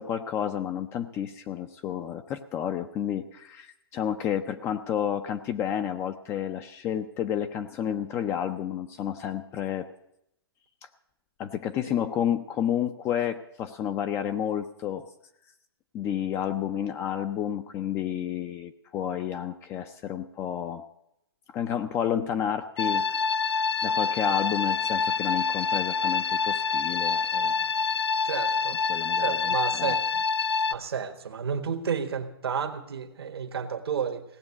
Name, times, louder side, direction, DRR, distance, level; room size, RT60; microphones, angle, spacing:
voice 1, 0.0-9.9 10.8-10.9 11.4-15.1 15.9-20.8 21.5-23.1 23.8-27.7 28.9-30.0, left 9 dB, 20° left, 8 dB, 0.4 m, -30 dB
sound 1, 22.8-30.7, left 4 dB, 85° left, 0.5 m, -26 dB
voice 2, 28.2-28.8 29.2-30.0 30.7-34.2, right 7 dB, 80° right, 5 dB, 1.5 m, -31 dB
16.5 x 7.0 x 9.5 m, 0.80 s
hypercardioid pair, 145°, 13 cm